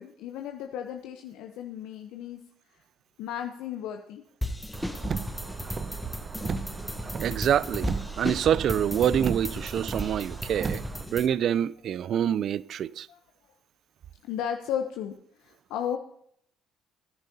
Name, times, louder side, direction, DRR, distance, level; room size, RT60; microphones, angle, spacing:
voice 1, 0.0-2.4 3.2-4.2 13.1-13.2 14.2-16.0, left 9 dB, 70° left, 0.8 m, -34 dB
sound 1, 4.4-11.3, left 1 dB, 10° left, 1.1 m, -35 dB
Car, 4.7-11.1, right 5 dB, 40° right, 0.9 m, -35 dB
voice 2, 7.2-10.8 11.1-13.1, right 9 dB, 55° right, 0.4 m, -26 dB
18.5 x 10.5 x 2.8 m
hypercardioid pair, 55°, 0 cm